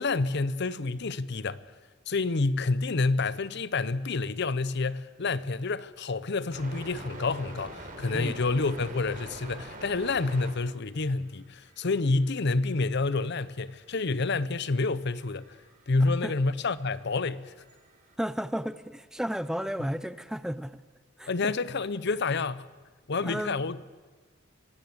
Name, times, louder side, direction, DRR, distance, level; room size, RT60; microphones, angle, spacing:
voice 1, 0.0-1.6 2.1-15.4 15.9-17.5 21.3-22.6 23.1-23.8, left 3 dB, 60° left, 0.8 m, -28 dB
sound 1, 5.2-5.3 6.3-10.6 10.9-11.1 11.4-18.1, right 2 dB, 45° right, 3.8 m, -46 dB
voice 2, 18.2-20.8 21.2-21.5 23.2-23.6, equal, 5° right, 0.6 m, -33 dB
24.0 x 17.0 x 7.9 m
head